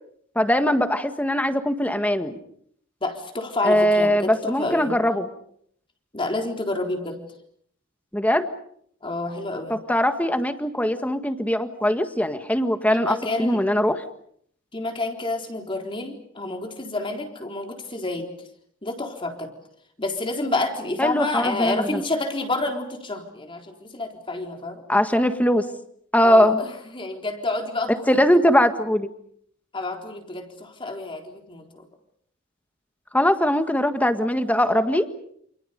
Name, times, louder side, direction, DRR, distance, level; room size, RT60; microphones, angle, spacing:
voice 1, 0.3-2.4 3.6-5.3 8.1-8.5 9.7-14.0 21.0-22.0 24.9-25.6 26.1-26.6 28.1-29.1 33.1-35.1, equal, 10° left, 8 dB, 1.7 m, -21 dB
voice 2, 3.0-4.9 6.1-7.2 9.0-9.8 12.9-13.6 14.7-18.3 18.8-19.5 20.0-24.8 26.2-28.0 29.7-31.9, left 2 dB, 25° left, 3 dB, 4.0 m, -29 dB
29.0 x 28.5 x 5.2 m, 0.67 s
head